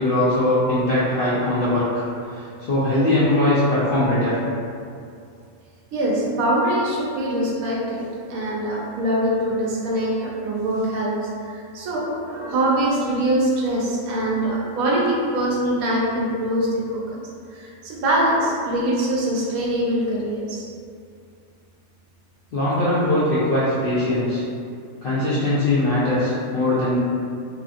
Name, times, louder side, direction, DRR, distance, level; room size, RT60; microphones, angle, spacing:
voice 1, 0.0-1.8 2.3-4.4 22.5-24.4 25.0-27.0, left 1 dB, 65° left, -10 dB, 0.5 m, -20 dB
voice 2, 5.9-17.2 17.5-20.6, right 1 dB, 80° right, -3 dB, 1.0 m, -23 dB
2.8 x 2.5 x 2.4 m, 2.4 s
omnidirectional pair, 1.5 m